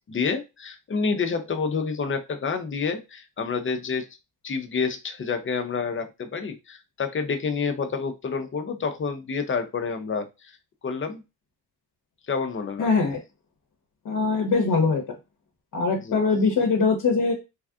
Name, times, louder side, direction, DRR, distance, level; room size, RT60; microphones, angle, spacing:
voice 1, 0.1-4.1 4.4-10.5 10.8-11.2 12.3-12.9 16.0-16.2, left 5 dB, 30° left, 7 dB, 0.6 m, -28 dB
voice 2, 12.8-13.2 14.0-15.0 15.7-17.3, left 4 dB, 55° left, 0 dB, 0.9 m, -22 dB
3.4 x 2.4 x 2.4 m, 0.25 s
cardioid pair, 65°, 39 cm